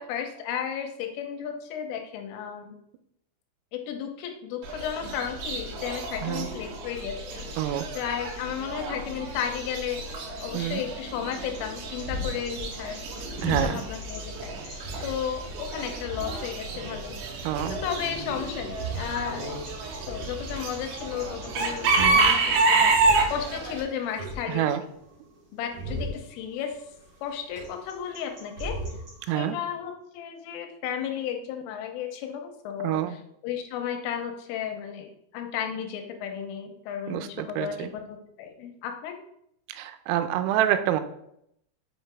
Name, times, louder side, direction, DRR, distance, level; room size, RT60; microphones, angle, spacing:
voice 1, 0.0-2.8 3.7-13.0 13.5-17.2 17.6-19.7 20.1-22.9 23.3-24.8 25.5-26.8 27.2-28.8 29.3-39.2, left 8 dB, 85° left, 4 dB, 3.3 m, -34 dB
Chicken rooster / Bird, 4.6-23.8, right 3 dB, 75° right, 3.4 m, -29 dB
sound 1, 10.3-29.3, equal, 35° right, 3.7 m, -38 dB
voice 2, 13.4-13.9 17.4-17.8 22.0-22.2 24.5-24.8 29.3-29.6 32.8-33.1 37.1-37.9 39.7-41.0, right 11 dB, 90° right, 10 dB, 3.3 m, -27 dB
7.5 x 5.2 x 3.4 m, 0.75 s
omnidirectional pair, 5.8 m